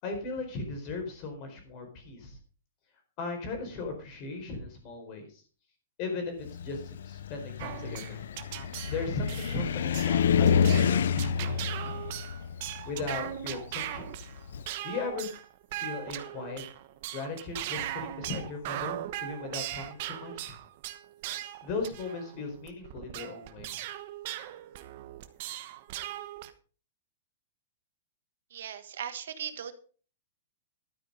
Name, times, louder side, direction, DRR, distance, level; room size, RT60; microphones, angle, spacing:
voice 1, 0.0-2.4 3.2-5.4 6.0-8.2 8.9-12.0 12.9-14.1 14.8-15.3 15.8-16.6 17.1-20.5 21.6-23.8, left 3 dB, 30° left, 5 dB, 4.5 m, -37 dB
Car, 6.5-14.7, left 7 dB, 75° left, 0.6 m, -28 dB
sound 1, 7.6-26.5, right 14 dB, 40° right, 1.1 m, -39 dB
voice 2, 28.5-29.7, right 9 dB, 70° right, 9 dB, 1.7 m, -38 dB
12.5 x 9.2 x 5.2 m, 0.39 s
supercardioid pair, 170°, 0 cm